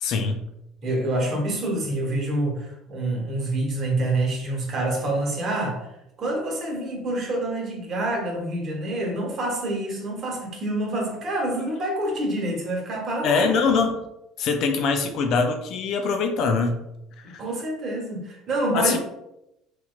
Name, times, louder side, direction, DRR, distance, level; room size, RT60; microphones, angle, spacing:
voice 1, 0.0-0.4 13.2-14.0 14.4-16.8 17.2-17.4 18.7-19.0, left 4 dB, 60° left, 5 dB, 0.4 m, -23 dB
voice 2, 0.8-5.9 6.2-13.5 17.2-19.0, right 1 dB, 50° right, 0 dB, 1.0 m, -27 dB
3.0 x 2.9 x 2.4 m, 0.85 s
hypercardioid pair, 75°, 0 cm